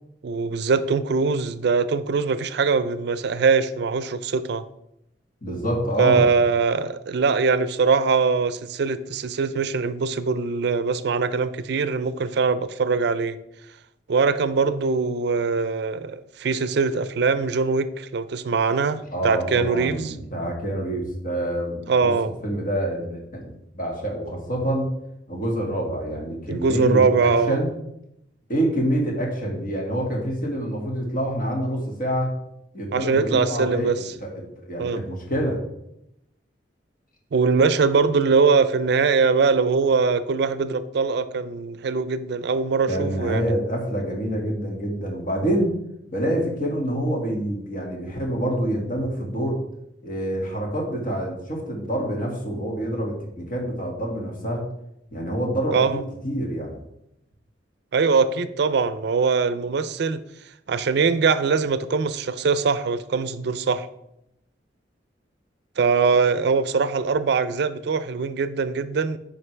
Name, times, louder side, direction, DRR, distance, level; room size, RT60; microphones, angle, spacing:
voice 1, 0.2-4.6 6.0-13.4 14.1-20.1 21.9-22.3 26.5-27.6 32.9-34.0 34.8-35.0 37.3-43.5 55.7-56.0 57.9-60.2 60.7-63.9 65.8-69.2, right 4 dB, 65° right, 0.4 m, -22 dB
voice 2, 5.4-6.3 19.1-22.1 22.4-24.9 25.3-27.7 28.5-32.3 32.7-35.6 42.9-45.7 46.1-49.6 50.0-54.6 55.1-55.9 56.2-56.8, right 1 dB, 50° left, 1.9 m, -26 dB
9.6 x 5.2 x 3.3 m
head